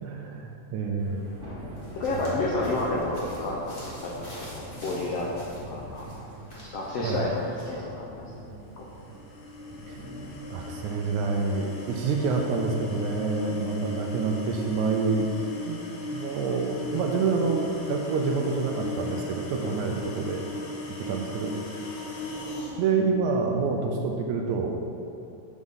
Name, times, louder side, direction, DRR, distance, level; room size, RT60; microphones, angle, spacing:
voice 1, 0.0-1.3 7.0-7.2 9.9-10.0 10.5-15.3 15.6-15.8 16.1-20.4 21.0-22.0 22.8-24.8, right 4 dB, 75° right, 2 dB, 2.0 m, -27 dB
Thunder / Rain, 1.0-15.0, right 1 dB, 25° right, 1.8 m, -44 dB
sound 1, 1.7-7.8, equal, 25° left, 1.2 m, -47 dB
voice 2, 1.9-6.1 6.6-8.3 8.8-8.9 21.0-21.1, left 2 dB, 75° left, -3 dB, 1.4 m, -30 dB
sound 2, 8.8-22.8, left 2 dB, 60° left, 1.5 m, -38 dB
7.3 x 6.6 x 5.5 m, 2.6 s
omnidirectional pair, 3.8 m